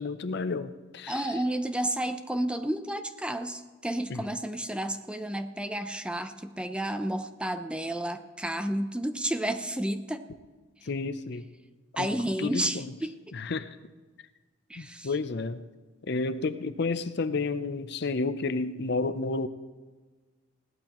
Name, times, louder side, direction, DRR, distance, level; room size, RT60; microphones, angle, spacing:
voice 1, 0.0-1.2 4.1-4.2 10.9-11.5 12.0-12.1 12.4-12.8 13.3-13.7 14.8-15.6 16.1-19.5, left 3 dB, 55° left, 12 dB, 0.6 m, -31 dB
voice 2, 1.1-10.3 12.0-13.4 14.7-15.1, right 1 dB, 5° right, 9 dB, 0.6 m, -31 dB
20.5 x 16.5 x 3.0 m, 1.4 s
head